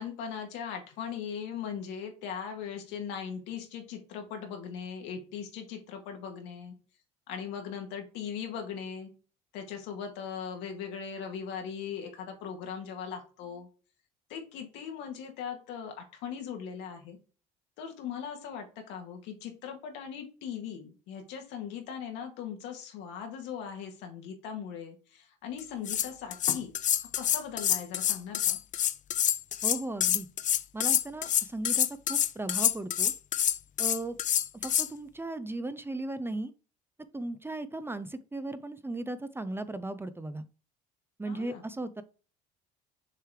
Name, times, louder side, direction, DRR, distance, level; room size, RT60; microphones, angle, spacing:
voice 1, 0.0-6.8 7.3-9.1 9.5-13.7 14.3-17.2 17.8-26.7 27.2-28.6 41.2-41.6, left 7 dB, 75° left, 4 dB, 1.8 m, -39 dB
sound 1, 25.6-25.7 25.9-34.9, left 10 dB, 45° left, 0.5 m, -27 dB
voice 2, 29.6-30.3 30.7-33.1 33.8-34.2 34.6-36.5 37.1-40.4 41.2-42.0, right 2 dB, 10° right, 12 dB, 0.6 m, -36 dB
6.7 x 3.2 x 4.7 m, 0.35 s
supercardioid pair, 80°, 19 cm